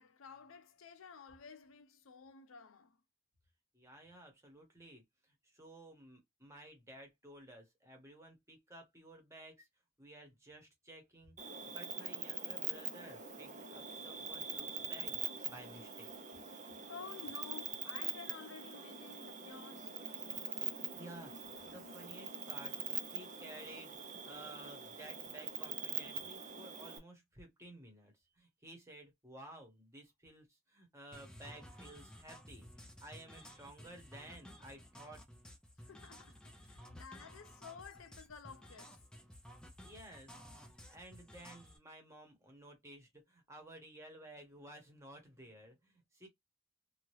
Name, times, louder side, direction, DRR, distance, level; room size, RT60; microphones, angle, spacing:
voice 1, 0.0-3.0 16.5-20.0 35.8-39.0, left 5 dB, 80° left, 0.5 m, -53 dB
voice 2, 3.7-5.0 5.4-9.7 10.0-11.3 11.7-15.2 15.4-16.1 20.9-21.3 21.7-22.8 23.1-32.7 33.0-35.2 39.8-46.3, right 1 dB, 15° right, 1.1 m, -54 dB
Cricket, 11.4-27.0, right 6 dB, 35° right, 0.6 m, -43 dB
sound 1, 31.1-41.8, equal, 5° left, 0.5 m, -55 dB
2.8 x 2.4 x 3.1 m
head